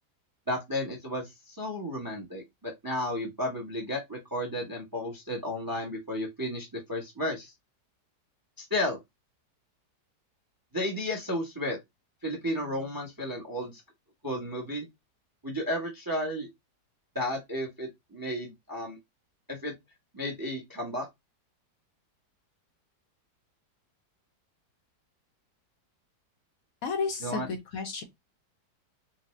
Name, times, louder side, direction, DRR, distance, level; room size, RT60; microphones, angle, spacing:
voice 1, 0.5-7.5 8.6-9.0 10.7-11.8 12.2-13.8 14.2-14.9 15.4-16.5 17.1-19.0 19.5-19.7 20.1-21.1 27.2-27.5, left 1 dB, 20° right, 0.6 m, -33 dB
voice 2, 26.8-28.0, left 5 dB, 65° left, 1.0 m, -32 dB
4.0 x 2.1 x 3.0 m
omnidirectional pair, 1.8 m